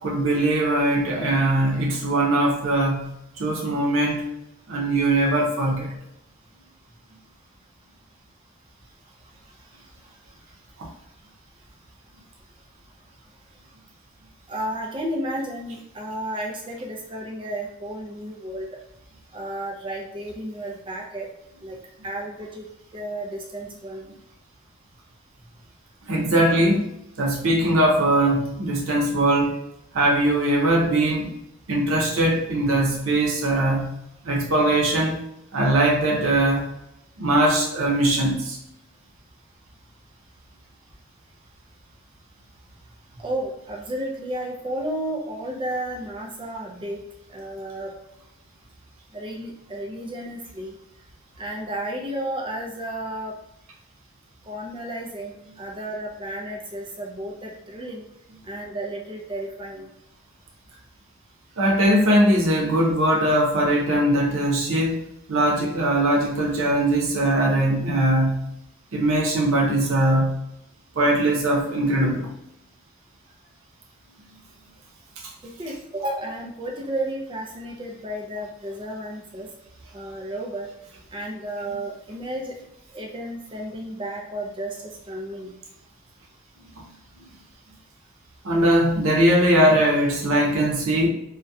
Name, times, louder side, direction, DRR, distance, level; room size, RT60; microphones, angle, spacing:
voice 1, 0.0-3.1 3.4-4.2 4.7-5.9 26.1-26.9 27.2-29.5 29.9-31.3 31.7-33.9 34.2-35.2 35.5-36.7 37.2-38.6 61.6-68.5 68.9-70.4 71.0-72.3 88.4-91.1, right 1 dB, 85° right, -2 dB, 0.7 m, -21 dB
voice 2, 14.5-18.7 19.3-21.3 21.6-21.8 22.0-22.7 22.9-24.1 43.2-47.0 47.3-47.9 49.1-50.7 51.4-53.3 54.5-58.0 58.5-59.9 75.4-79.5 79.9-80.7 81.1-82.6 82.9-84.8 85.1-85.5, right 1 dB, 25° right, -1 dB, 0.4 m, -32 dB
2.7 x 2.2 x 2.3 m, 0.85 s
head